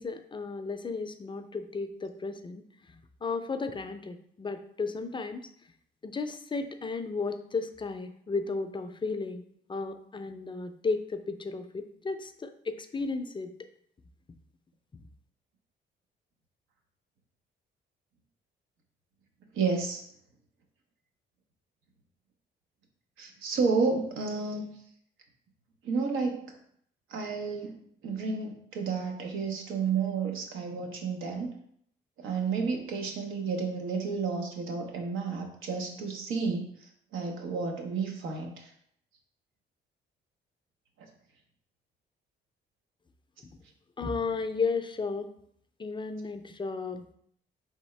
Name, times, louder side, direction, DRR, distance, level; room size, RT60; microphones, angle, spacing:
voice 1, 0.0-2.6 3.2-5.5 6.0-9.4 9.7-13.5 44.0-45.3 45.8-47.0, left 4 dB, 25° left, 8 dB, 0.4 m, -34 dB
voice 2, 19.5-20.0 23.2-24.7 25.8-26.4 27.1-27.7 28.0-31.5 32.2-38.7 41.0-41.1, right 4 dB, 85° right, 3 dB, 0.9 m, -31 dB
4.8 x 3.5 x 3.2 m, 0.67 s
cardioid pair, 90°, 20 cm